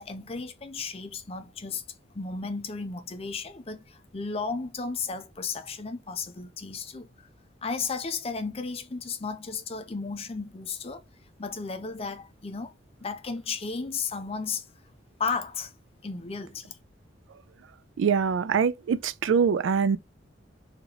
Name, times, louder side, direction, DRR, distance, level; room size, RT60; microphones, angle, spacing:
voice 1, 0.0-1.8 2.1-7.1 7.6-11.0 11.4-12.7 13.0-14.6 15.2-15.7 16.0-16.8, left 4 dB, 30° left, 0.5 m, -34 dB
voice 2, 18.0-20.0, right 6 dB, 80° right, 0.4 m, -24 dB
3.0 x 2.9 x 3.8 m
head